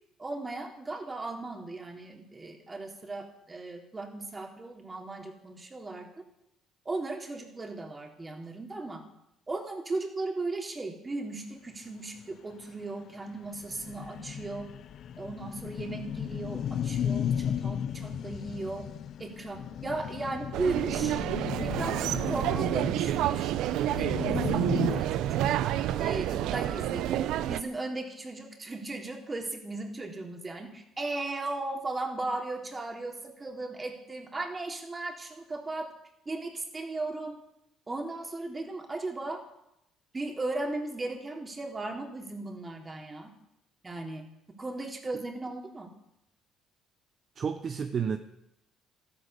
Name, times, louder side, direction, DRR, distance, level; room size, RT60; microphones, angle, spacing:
voice 1, 0.2-6.1 6.8-9.0 9.5-14.7 15.2-18.9 19.2-21.2 21.6-23.5 23.9-25.5 26.0-27.2 27.5-35.9 36.2-37.4 37.9-39.4 40.1-43.3 43.8-44.2 44.6-45.9, right 2 dB, 20° right, 3 dB, 3.3 m, -36 dB
sound 1, 12.3-12.4 12.7-12.8 13.1-13.2 13.5-25.0, left 9 dB, 60° left, 0.7 m, -35 dB
sound 2, 20.5-27.6, right 12 dB, 75° right, 0.8 m, -29 dB
voice 2, 47.4-48.2, right 6 dB, 45° right, 8 dB, 1.0 m, -31 dB
13.5 x 12.0 x 8.4 m, 0.83 s
cardioid pair, 95°, 0 cm